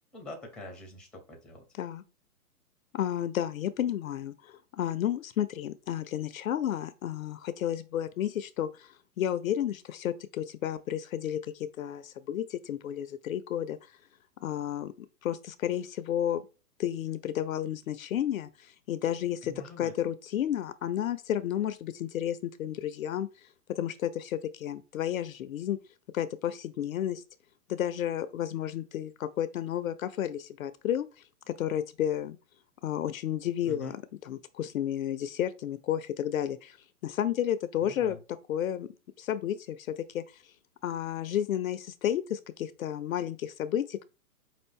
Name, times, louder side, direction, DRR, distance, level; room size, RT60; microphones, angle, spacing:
voice 1, 0.0-1.6 19.4-19.9 33.7-34.0 37.8-38.2, equal, ahead, 0.8 m, -45 dB
voice 2, 2.9-13.9 14.4-14.9 15.2-16.5 16.8-23.3 23.7-25.8 26.1-27.2 27.7-31.1 31.5-32.4 32.8-36.8 37.0-38.2 38.5-38.9 39.2-40.4 40.8-44.0, left 10 dB, 65° left, 0.5 m, -32 dB
5.2 x 2.5 x 3.5 m
hypercardioid pair, 130°, 45 cm